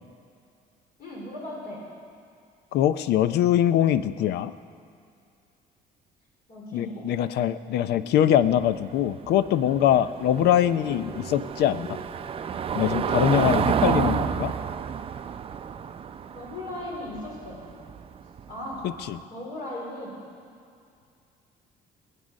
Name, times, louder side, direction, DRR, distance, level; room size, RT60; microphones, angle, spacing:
voice 1, 1.0-1.8 6.5-7.0 16.3-17.6 18.5-18.8 19.3-20.2, left 1 dB, 60° left, -3 dB, 4.3 m, -37 dB
voice 2, 2.7-4.5 6.7-12.0 12.7-14.5 19.1-19.2, left 11 dB, 80° left, 14 dB, 0.6 m, -23 dB
Car passing by / Engine, 8.4-19.1, right 7 dB, 35° right, 0.5 m, -30 dB
20.5 x 8.4 x 6.3 m, 2.4 s
cardioid pair, 110°, 17 cm